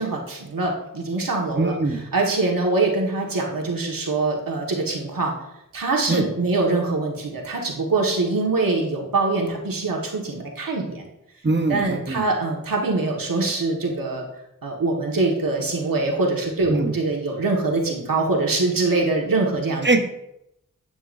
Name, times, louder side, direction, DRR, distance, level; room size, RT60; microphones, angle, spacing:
voice 1, 0.0-5.3 5.7-11.0 11.7-14.3 14.6-19.9, right 3 dB, 75° right, -1 dB, 1.8 m, -23 dB
voice 2, 1.6-2.0 6.1-6.2 11.4-12.2 16.7-16.9 19.8-20.0, right 2 dB, 30° right, 5 dB, 1.0 m, -21 dB
10.5 x 8.4 x 2.7 m, 0.82 s
wide cardioid pair, 80°, 34 cm